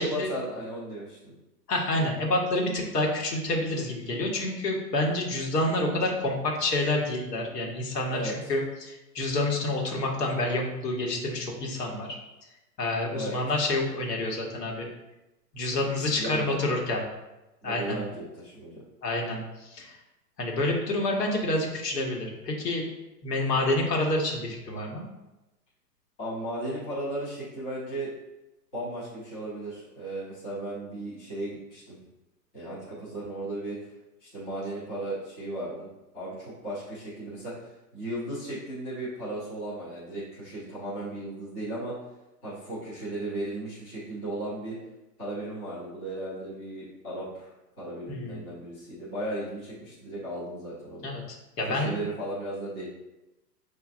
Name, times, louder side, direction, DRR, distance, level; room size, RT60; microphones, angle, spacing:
voice 1, 0.0-1.3 8.1-8.3 13.1-13.4 15.9-16.6 17.6-18.8 26.2-28.1 28.7-32.0 32.5-33.8 34.2-35.9 36.1-42.0 42.4-44.8 45.2-47.5 47.8-51.1 51.7-52.9, right 1 dB, 10° left, -11 dB, 0.4 m, -35 dB
voice 2, 1.7-12.2 12.8-14.9 15.5-17.0 17.6-18.0 19.0-20.0 20.4-22.9 23.2-25.0 48.1-48.4 51.0-51.2 51.6-52.0, left 2 dB, 70° left, 0 dB, 1.2 m, -28 dB
6.1 x 2.5 x 2.4 m, 0.99 s
hypercardioid pair, 130°, 49 cm